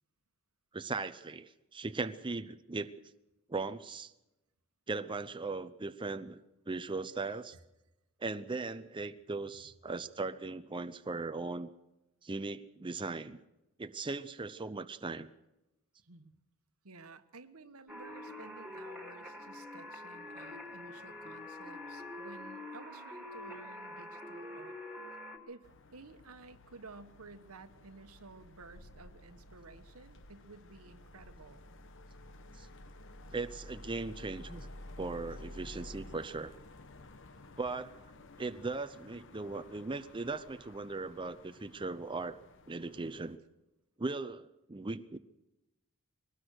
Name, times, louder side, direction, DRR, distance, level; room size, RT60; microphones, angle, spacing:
voice 1, 0.7-2.9 3.5-4.1 4.9-6.4 6.7-7.6 8.2-11.7 12.2-13.4 13.8-15.3 32.6-32.7 33.3-34.7 35.0-36.5 37.6-38.0 38.4-42.4 42.7-43.4 44.0-45.2, right 3 dB, 20° right, 9 dB, 0.6 m, -38 dB
voice 2, 16.0-16.4 16.8-24.8 25.5-31.6, right 3 dB, 85° right, 10 dB, 1.3 m, -54 dB
sound 1, 17.9-25.4, left 1 dB, ahead, 2.9 m, -45 dB
sound 2, 25.6-43.3, left 1 dB, 60° left, 1.2 m, -52 dB
22.0 x 19.0 x 6.4 m, 0.95 s
head